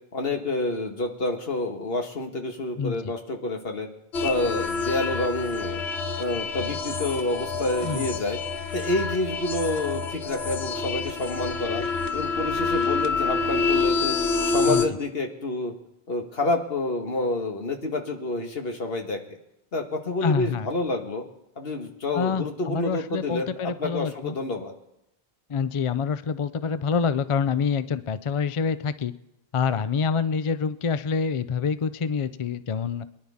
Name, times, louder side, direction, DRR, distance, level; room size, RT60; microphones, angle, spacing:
voice 1, 0.1-3.9 4.2-5.8 6.2-8.4 8.7-11.8 12.1-14.2 14.5-15.7 16.1-19.2 19.7-21.2 21.6-24.7, left 2 dB, 65° left, 4 dB, 1.8 m, -28 dB
sound 1, 4.1-14.9, left 4 dB, 85° left, 1.2 m, -27 dB
voice 2, 20.2-20.7 22.1-24.4 25.5-29.1 29.5-33.1, left 6 dB, 45° left, 14 dB, 0.4 m, -26 dB
23.5 x 10.5 x 3.6 m, 0.85 s
omnidirectional pair, 1.1 m